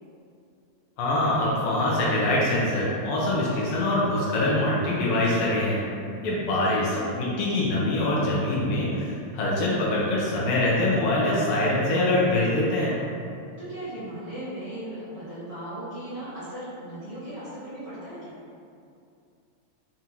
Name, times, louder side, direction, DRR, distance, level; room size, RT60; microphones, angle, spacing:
voice 1, 1.0-5.8 6.2-6.8 7.1-13.0, left 1 dB, 80° left, -6 dB, 1.3 m, -24 dB
voice 2, 6.6-7.1 13.6-18.4, right 1 dB, 85° right, -13 dB, 0.6 m, -37 dB
5.2 x 2.4 x 2.9 m, 2.5 s
omnidirectional pair, 3.3 m